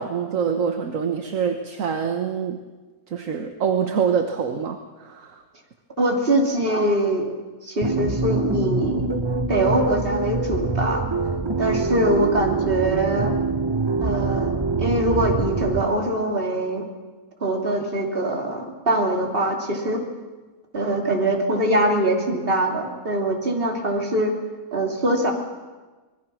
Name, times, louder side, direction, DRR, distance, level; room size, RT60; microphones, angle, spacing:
voice 1, 0.0-2.6 3.1-5.4, right 7 dB, 65° right, 5 dB, 1.5 m, -25 dB
voice 2, 6.0-7.3 7.6-9.1 9.5-11.0 11.6-13.3 14.0-16.8 17.4-20.0 20.7-24.3 24.7-25.3, right 1 dB, 40° right, 1 dB, 3.1 m, -23 dB
sound 1, 7.8-15.8, right 3 dB, 20° right, 0.9 m, -24 dB
26.0 x 20.5 x 6.2 m, 1.3 s
omnidirectional pair, 1.5 m